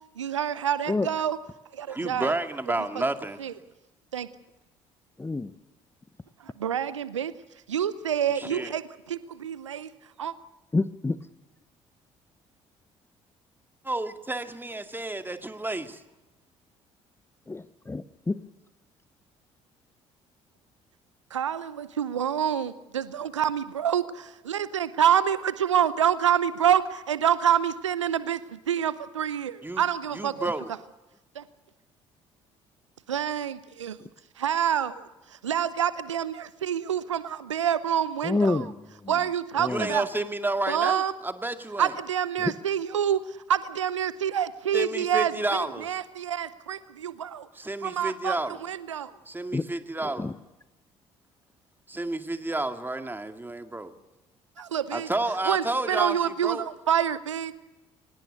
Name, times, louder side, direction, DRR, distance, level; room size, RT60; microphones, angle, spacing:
voice 1, 0.2-1.4 1.7-2.3 3.4-3.5 4.1-4.3 6.4-7.3 7.7-9.9 10.2-10.3 21.3-30.5 31.3-31.4 33.1-34.0 34.4-38.7 39.1-40.1 40.7-41.1 41.8-47.5 47.8-49.1 54.6-55.1 55.4-57.5, right 9 dB, 90° right, 16 dB, 0.7 m, -27 dB
voice 2, 1.9-3.4 8.4-8.7 13.8-16.0 29.6-29.8 30.1-30.7 39.7-41.9 44.7-46.0 47.6-48.6 49.3-50.3 51.9-53.9 54.9-56.2 56.4-56.6, right 2 dB, 15° right, 7 dB, 2.1 m, -30 dB
voice 3, 5.2-5.5 10.7-11.2 17.5-18.4 34.0-34.1 38.2-39.1 39.6-39.9 42.4-42.5 49.5-49.7 50.0-50.3, left 3 dB, 15° left, 16 dB, 0.8 m, -28 dB
24.0 x 19.5 x 6.6 m, 1.0 s
figure-of-eight pair, 50°, 15 cm